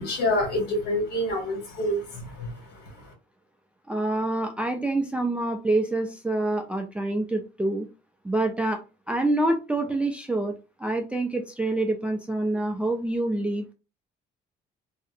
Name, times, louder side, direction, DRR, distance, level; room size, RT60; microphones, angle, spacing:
voice 1, 0.0-3.1, left 1 dB, 70° left, 1 dB, 1.5 m, -28 dB
voice 2, 3.9-7.9 8.2-8.8 9.1-10.5 10.8-13.6, right 2 dB, 5° right, 3 dB, 0.3 m, -26 dB
2.6 x 2.0 x 2.5 m, 0.29 s
cardioid pair, 110°, 17 cm